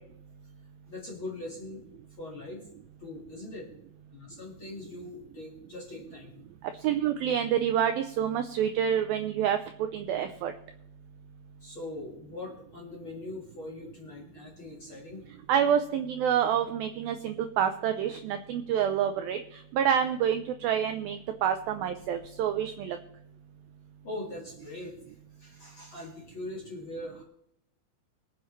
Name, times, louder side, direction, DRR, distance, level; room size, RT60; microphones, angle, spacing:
voice 1, 0.9-1.8 2.2-2.7 3.0-3.7 4.1-6.4 11.6-15.3 24.0-27.2, left 2 dB, 45° left, -2 dB, 1.8 m, -41 dB
voice 2, 6.8-9.6 9.9-10.5 15.5-19.4 19.7-23.0, right 9 dB, 90° right, 8 dB, 2.0 m, -27 dB
23.5 x 7.9 x 3.1 m, 0.76 s
omnidirectional pair, 5.0 m